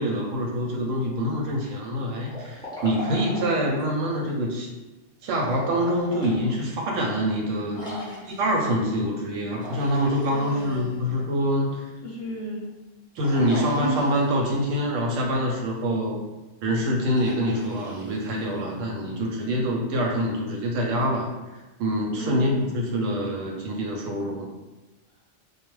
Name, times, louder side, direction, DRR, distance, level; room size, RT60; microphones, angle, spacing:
voice 1, 0.0-4.7 5.2-7.8 8.4-11.8 13.2-16.2 16.6-21.3 21.8-24.5, equal, 85° right, 0 dB, 1.0 m, -25 dB
Liquid, 2.3-3.9 5.3-6.4 6.9-7.0 7.7-8.7 9.5-11.2 13.2-14.6 17.1-18.7, left 1 dB, 5° left, 0.4 m, -40 dB
voice 2, 7.7-8.3 10.3-11.2 12.0-12.7 13.3-14.0 22.2-22.9, right 1 dB, 65° left, -3 dB, 0.8 m, -33 dB
2.3 x 2.1 x 3.0 m, 1.1 s
omnidirectional pair, 1.3 m